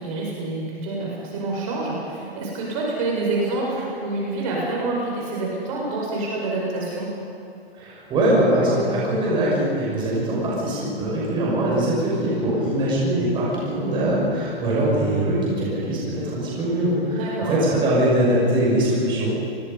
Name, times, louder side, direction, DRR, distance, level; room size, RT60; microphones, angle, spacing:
voice 1, 0.0-7.1 17.1-17.5, right 2 dB, 35° right, -3 dB, 5.6 m, -27 dB
voice 2, 7.7-19.3, right 1 dB, 15° right, -6 dB, 6.0 m, -22 dB
29.0 x 20.5 x 5.5 m, 2.6 s
hypercardioid pair, 170°, 31 cm